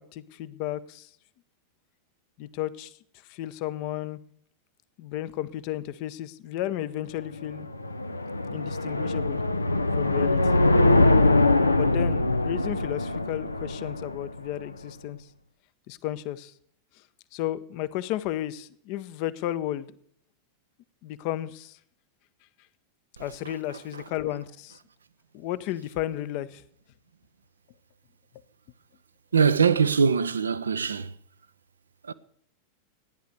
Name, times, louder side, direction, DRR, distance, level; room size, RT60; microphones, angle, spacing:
voice 1, 0.1-1.1 2.4-2.9 3.3-4.2 5.0-7.7 8.5-9.4 10.0-10.6 11.7-15.3 15.9-16.5 17.3-19.9 21.0-21.8 23.2-24.8 25.3-26.6, left 13 dB, 45° left, 0.8 m, -33 dB
sound 1, 7.2-14.6, left 2 dB, 80° left, 0.6 m, -23 dB
voice 2, 29.3-31.1 32.1-32.2, right 6 dB, 70° right, 0.6 m, -22 dB
14.0 x 10.5 x 6.7 m
figure-of-eight pair, 90°, 0 cm